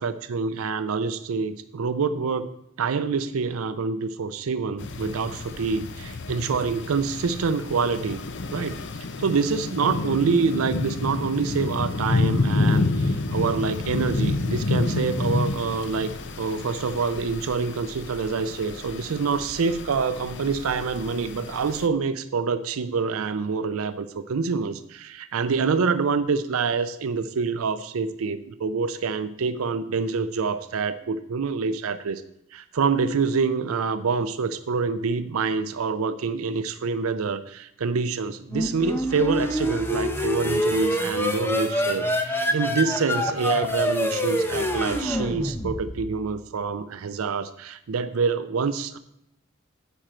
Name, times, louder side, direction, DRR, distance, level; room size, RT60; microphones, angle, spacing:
voice 1, 0.0-2.5 2.8-8.2 8.5-8.8 9.2-16.1 16.4-32.2 32.5-49.0, right 5 dB, 80° right, 12 dB, 0.5 m, -26 dB
sound 1, 4.8-21.9, left 3 dB, 55° left, 0.7 m, -29 dB
sound 2, 38.5-46.1, equal, 10° left, 0.8 m, -26 dB
9.9 x 4.4 x 7.5 m, 0.79 s
head